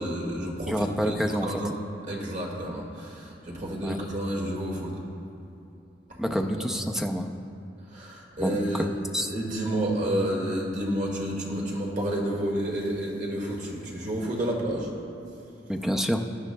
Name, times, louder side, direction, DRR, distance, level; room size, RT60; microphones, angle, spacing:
voice 1, 0.0-1.7 2.1-4.9 6.1-6.7 7.9-8.9 9.3-14.9, right 1 dB, 45° right, -2 dB, 1.8 m, -30 dB
voice 2, 0.7-1.5 3.8-4.0 6.2-7.3 8.4-8.9 9.1-9.3 15.7-16.2, equal, 5° right, 3 dB, 0.5 m, -27 dB
19.0 x 10.0 x 2.3 m, 2.7 s
head